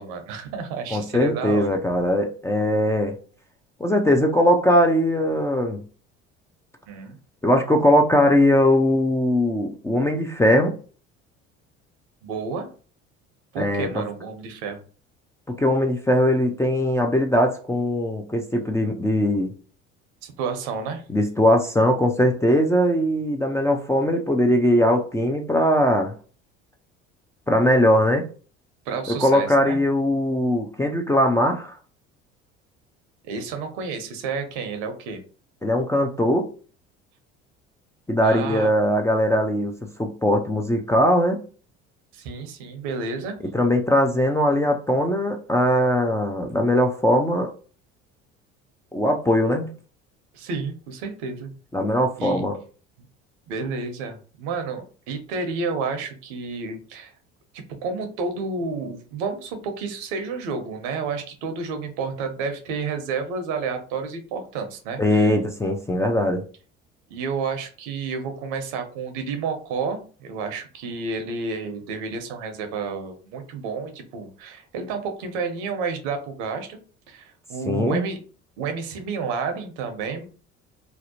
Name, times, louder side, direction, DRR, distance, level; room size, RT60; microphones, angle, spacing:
voice 1, 0.0-1.8 6.9-7.2 12.2-12.7 13.5-14.8 20.2-21.0 28.9-29.8 33.2-35.2 38.2-38.7 42.1-43.4 50.3-51.5 52.2-52.4 53.5-57.1 57.8-65.3 67.1-76.8 77.1-78.2 78.6-80.3, right 4 dB, 70° right, 7 dB, 0.7 m, -30 dB
voice 2, 0.9-3.2 3.8-5.8 7.4-10.7 13.6-14.0 15.5-19.5 21.1-26.1 27.5-28.2 29.1-31.7 35.6-36.5 38.1-41.4 43.5-47.5 48.9-49.7 51.7-52.6 65.0-66.4 77.7-78.0, left 1 dB, 10° left, 1 dB, 0.4 m, -20 dB
2.7 x 2.0 x 2.7 m, 0.38 s
hypercardioid pair, 65°, 35 cm